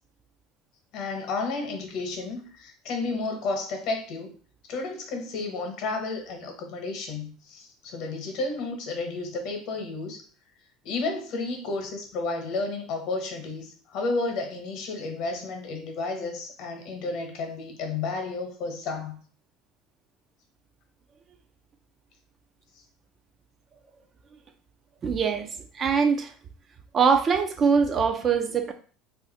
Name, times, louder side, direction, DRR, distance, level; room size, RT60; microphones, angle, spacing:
voice 1, 0.9-4.3 4.7-10.2 10.8-19.2, left 3 dB, 60° left, 0.9 m, -32 dB
voice 2, 25.0-25.5 25.7-26.3 26.9-28.7, right 6 dB, 30° right, 0.3 m, -22 dB
2.5 x 2.4 x 4.0 m
supercardioid pair, 130°, 0 cm